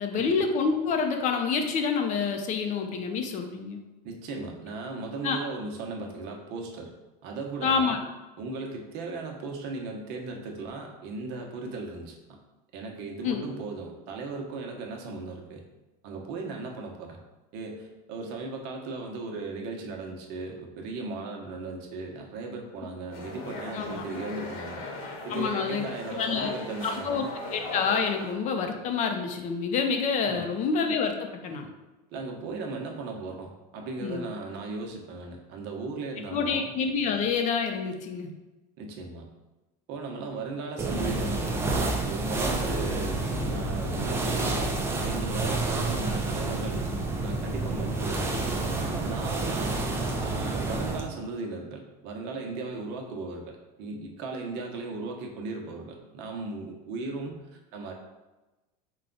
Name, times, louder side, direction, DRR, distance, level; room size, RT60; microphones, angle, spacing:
voice 1, 0.0-3.8 5.2-5.4 7.6-8.0 13.2-13.4 23.7-24.0 25.3-25.8 26.1-26.5 26.8-31.7 34.0-34.2 36.3-38.3, left 5 dB, 35° left, 5 dB, 0.6 m, -27 dB
voice 2, 4.0-6.9 7.2-8.0 8.4-12.4 12.7-15.6 16.0-17.2 17.5-24.8 25.2-27.3 30.2-30.5 32.1-36.7 38.8-39.3 39.9-41.5 42.0-46.8 47.1-48.4 48.9-49.8 50.2-57.9, right 3 dB, 55° right, 2 dB, 0.9 m, -37 dB
sound 1, 23.1-28.3, left 2 dB, 65° left, 1.0 m, -38 dB
sound 2, 40.8-51.1, right 2 dB, 10° right, 0.4 m, -29 dB
4.9 x 2.3 x 3.8 m, 1.1 s
supercardioid pair, 135°, 21 cm